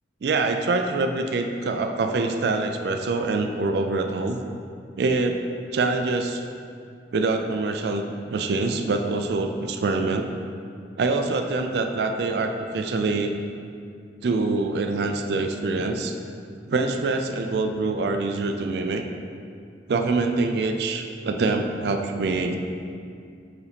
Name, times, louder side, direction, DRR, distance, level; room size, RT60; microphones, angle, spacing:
voice 1, 0.2-4.4 5.0-5.4 5.7-6.4 7.1-10.3 11.0-13.3 14.2-16.2 16.7-19.0 19.9-22.6, right 3 dB, 55° right, 5 dB, 0.3 m, -25 dB
4.9 x 4.0 x 5.1 m, 2.4 s
head